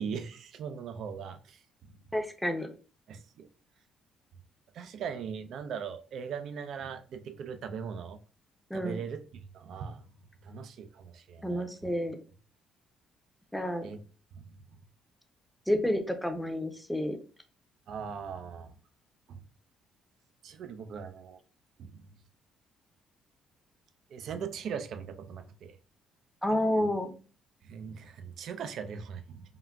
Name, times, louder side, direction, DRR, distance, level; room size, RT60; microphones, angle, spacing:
voice 1, 0.0-1.9 3.1-3.5 4.7-8.2 8.7-10.0 10.4-11.6 13.8-14.0 14.3-14.4 17.9-18.7 19.3-19.4 20.4-21.4 21.8-22.0 24.1-25.8 27.6-29.4, right 6 dB, 65° right, 9 dB, 0.3 m, -40 dB
voice 2, 2.1-2.7 8.7-9.0 11.4-12.2 13.5-13.9 15.7-17.2 26.4-27.2, left 1 dB, 5° left, 5 dB, 0.5 m, -30 dB
3.6 x 2.2 x 2.3 m, 0.38 s
cardioid pair, 85°, 0 cm